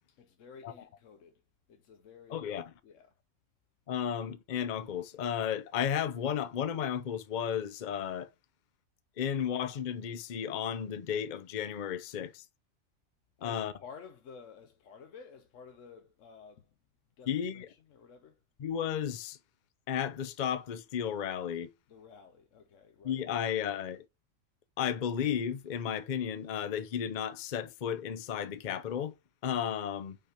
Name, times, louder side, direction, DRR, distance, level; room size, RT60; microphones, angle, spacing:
voice 1, 0.1-1.4 1.7-3.1 13.4-16.7 17.2-18.4 21.9-23.6, left 6 dB, 70° left, 1.1 m, -53 dB
voice 2, 2.3-2.7 3.9-8.3 9.2-12.4 13.4-13.7 17.3-17.7 18.6-19.4 19.9-21.7 23.0-24.0 24.8-29.1 29.4-30.2, left 8 dB, 45° left, 0.6 m, -33 dB
5.6 x 5.0 x 4.3 m
omnidirectional pair, 1.4 m